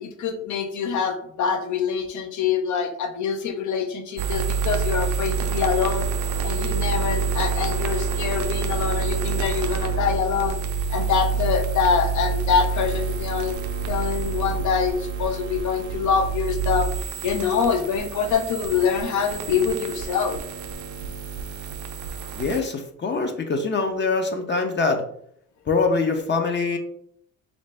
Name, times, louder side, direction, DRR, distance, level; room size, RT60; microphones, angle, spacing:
voice 1, 0.0-6.0 6.4-10.6 10.9-13.5 13.9-16.9 17.2-20.4, left 6 dB, 75° left, 5 dB, 0.7 m, -25 dB
sound 1, 4.2-22.6, right 5 dB, 75° right, 0.5 m, -27 dB
voice 2, 22.3-25.0 25.7-26.8, left 4 dB, 40° left, 4 dB, 0.6 m, -24 dB
3.3 x 2.6 x 3.3 m, 0.67 s
cardioid pair, 90°, 30 cm